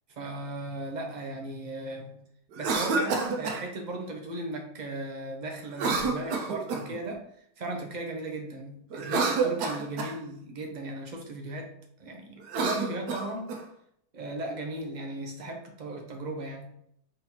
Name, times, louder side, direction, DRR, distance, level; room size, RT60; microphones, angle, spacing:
voice 1, 0.1-2.2 2.6-7.3 7.6-13.5 14.1-16.8, right 2 dB, 45° right, 2 dB, 0.6 m, -37 dB
Cough, 2.5-3.6 5.7-7.0 8.9-10.2 12.4-13.6, right 4 dB, 85° right, 1.3 m, -29 dB
4.2 x 3.9 x 2.8 m, 0.72 s
omnidirectional pair, 1.7 m